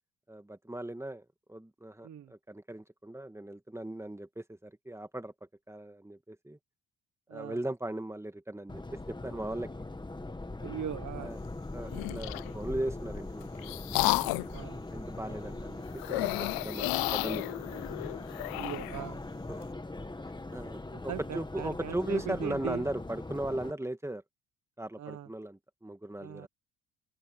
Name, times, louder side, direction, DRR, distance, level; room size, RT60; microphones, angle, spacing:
voice 1, 0.3-5.3 5.7-6.6 7.3-9.7 11.2-11.4 11.7-13.8 14.9-17.7 19.5-19.6 20.5-24.2 24.8-26.5, right 1 dB, 10° right, 2.2 m, -38 dB
Subway metro underground, 8.7-23.7, left 2 dB, 15° left, 1.9 m, -41 dB
voice 2, 10.6-11.3 14.5-14.8 18.5-19.2 20.9-22.8 25.0-25.3 26.2-26.5, right 10 dB, 55° right, 1.3 m, -39 dB
sound 1, 11.9-12.5 13.2-14.6 16.0-19.0, left 23 dB, 85° left, 0.5 m, -32 dB
open air
supercardioid pair, 80°, 35 cm